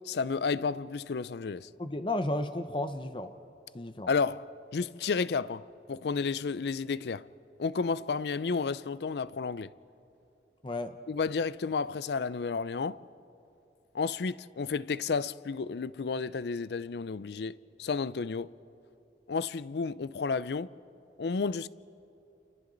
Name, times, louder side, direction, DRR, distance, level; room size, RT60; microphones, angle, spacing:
voice 1, 0.1-1.7 4.1-7.3 7.6-9.7 11.1-13.0 13.9-18.5 19.3-20.7 21.2-21.7, left 5 dB, 70° left, 0.4 m, -32 dB
voice 2, 1.8-3.3 3.7-4.1 10.6-11.0, left 1 dB, 30° left, 0.6 m, -33 dB
29.0 x 29.0 x 3.9 m
head